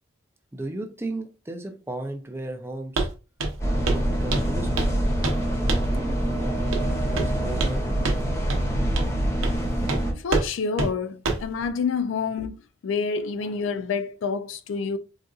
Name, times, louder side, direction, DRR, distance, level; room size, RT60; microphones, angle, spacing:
voice 1, 0.5-3.1 3.9-5.0 5.8-8.0, right 2 dB, 10° right, 0.4 m, -36 dB
Walk footsteps, 3.0-3.1 3.4-3.6 3.9-4.0 4.3-5.0 5.2-5.4 5.7-5.9 6.7-6.9 7.2-7.8 8.0-8.2 8.5-8.6 9.0-9.1 9.4-9.6 9.9-10.0 10.3-10.5 10.8-10.9 11.3-11.5, right 2 dB, 85° right, 0.7 m, -26 dB
sound 1, 3.6-10.1, right 1 dB, 15° left, 0.9 m, -25 dB
voice 2, 10.2-12.6 12.8-15.0, left 5 dB, 65° left, 0.4 m, -28 dB
4.0 x 2.4 x 2.4 m
head